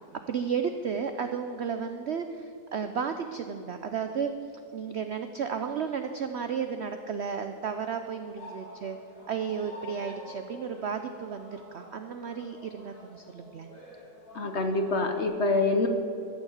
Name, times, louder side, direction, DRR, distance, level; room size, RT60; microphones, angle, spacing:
voice 1, 0.3-4.3 4.7-9.0 9.3-13.7, right 6 dB, 80° right, 7 dB, 0.6 m, -33 dB
sound 1, 8.3-15.3, left 1 dB, 80° left, 4.3 m, -48 dB
voice 2, 14.3-15.9, left 3 dB, 50° left, 6 dB, 0.9 m, -26 dB
13.5 x 7.2 x 8.0 m, 2.6 s
omnidirectional pair, 1.9 m